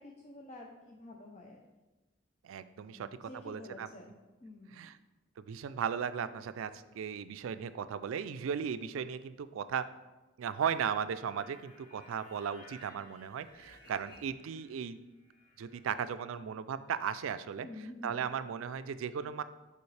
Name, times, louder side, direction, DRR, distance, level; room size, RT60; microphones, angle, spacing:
voice 1, 0.0-1.7 2.9-4.9 14.2-14.3 17.6-18.3, left 1 dB, 35° left, 0 dB, 0.6 m, -49 dB
voice 2, 2.4-3.9 4.7-5.0 5.4-9.9 10.4-15.0 15.6-17.7 18.0-19.4, right 7 dB, 75° right, 13 dB, 0.3 m, -36 dB
sound 1, 10.8-14.9 15.1-16.2, equal, 50° left, 2.2 m, -58 dB
6.9 x 4.9 x 3.3 m, 1.1 s
head